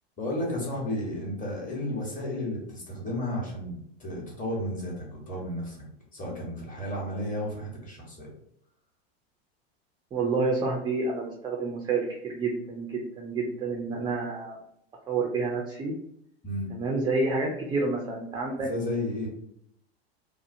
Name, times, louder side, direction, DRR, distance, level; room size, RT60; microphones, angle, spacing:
voice 1, 0.2-5.8 6.1-8.3 16.4-16.7 18.7-19.3, left 1 dB, 25° left, -3 dB, 1.1 m, -33 dB
voice 2, 10.1-14.6 15.1-15.9 16.7-18.7, right 3 dB, 15° right, 0 dB, 0.3 m, -29 dB
2.6 x 2.0 x 2.6 m, 0.73 s
hypercardioid pair, 105°, 32 cm